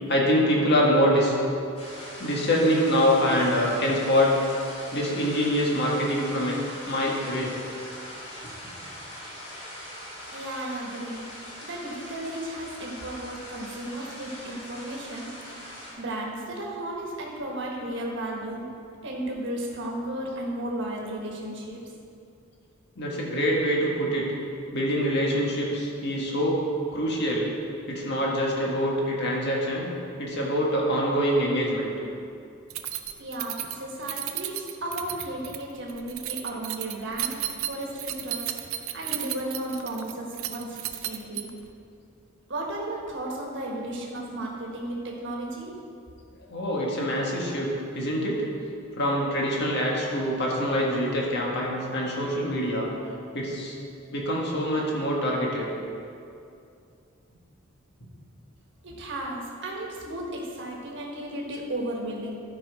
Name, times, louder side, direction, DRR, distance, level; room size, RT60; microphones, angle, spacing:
voice 1, 0.1-1.3 2.2-4.3 4.9-6.6 6.8-7.6 23.0-24.2 24.7-27.5 27.9-29.9 30.2-31.9 46.5-48.4 49.0-52.9 53.3-53.7 54.1-55.7, equal, 55° left, -3 dB, 1.8 m, -25 dB
sound 1, 1.8-15.9, equal, 30° left, 2.3 m, -41 dB
voice 2, 10.3-11.3 11.6-15.3 15.8-18.6 19.0-21.8 33.2-37.4 37.7-38.5 38.9-41.5 42.5-45.7 58.8-62.3, right 1 dB, 60° right, -2 dB, 1.4 m, -34 dB
Keys jangling, 32.7-41.7, right 12 dB, 80° right, 0.5 m, -34 dB
11.5 x 5.4 x 4.9 m, 2.5 s
head